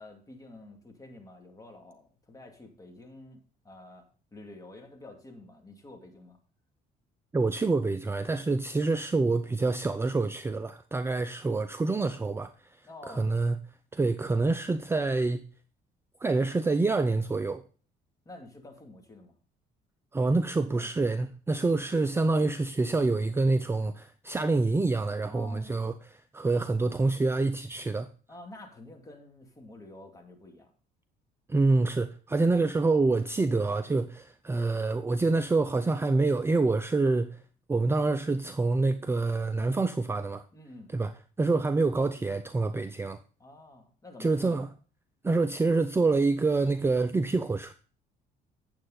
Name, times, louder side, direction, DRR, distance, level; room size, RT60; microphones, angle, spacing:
voice 1, 0.0-6.4 12.8-13.3 18.3-19.3 20.3-20.9 25.3-25.7 28.3-30.7 40.5-40.9 43.4-44.7, left 2 dB, 20° left, 2.2 m, -49 dB
voice 2, 7.3-12.5 13.2-13.6 13.9-15.4 16.2-17.6 20.1-25.9 26.3-28.1 31.5-37.4 37.7-40.4 40.9-41.1 41.4-43.2 44.2-44.7 45.2-47.7, right 3 dB, 15° right, 0.5 m, -26 dB
8.8 x 7.6 x 3.8 m
cardioid pair, 110°, 17 cm